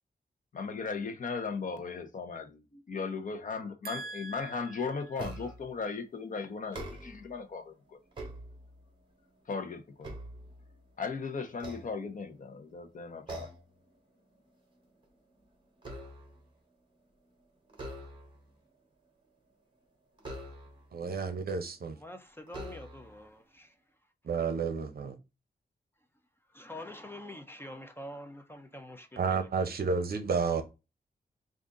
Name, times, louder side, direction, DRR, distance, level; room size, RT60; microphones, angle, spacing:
voice 1, 0.5-8.0 9.5-10.1 11.0-13.5, left 5 dB, 50° left, 0.7 m, -37 dB
voice 2, 3.8-4.9 20.9-22.0 24.2-25.2 29.2-30.6, right 5 dB, 60° right, 0.7 m, -32 dB
sound 1, 5.2-5.7 6.6-7.4 7.9-9.0 9.5-11.0 11.5-12.5 13.3-13.8 14.1-14.4 14.8-16.5 17.7-18.5 20.2-21.0 21.7-21.8 22.5-23.2, right 1 dB, 30° right, 1.3 m, -44 dB
voice 3, 22.0-23.7 26.5-29.4, left 1 dB, 15° left, 0.4 m, -46 dB
3.8 x 2.5 x 3.6 m
wide cardioid pair, 175°, 17 cm